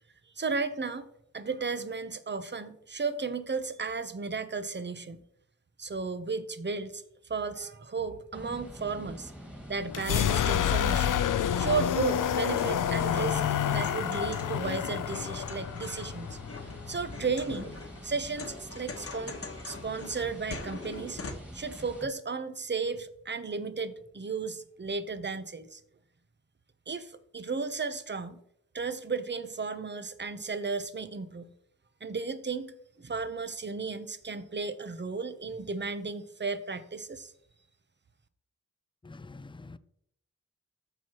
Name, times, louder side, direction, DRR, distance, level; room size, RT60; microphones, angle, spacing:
voice 1, 0.4-1.1 1.3-5.2 5.8-7.0 7.3-9.3 9.7-11.2 11.6-13.4 13.7-17.7 18.0-19.4 19.7-21.2 21.5-25.8 26.9-28.4 28.7-31.5 32.0-37.3, right 4 dB, 35° right, 0.8 m, -34 dB
sound 1, 8.3-22.0, equal, 5° right, 2.1 m, -46 dB
sound 2, 9.9-17.6, left 9 dB, 80° left, 0.5 m, -29 dB
sound 3, 12.2-21.3, left 3 dB, 45° left, 1.2 m, -44 dB
voice 2, 39.0-39.8, left 3 dB, 15° left, 0.4 m, -46 dB
13.5 x 4.7 x 2.9 m
wide cardioid pair, 60°, 31 cm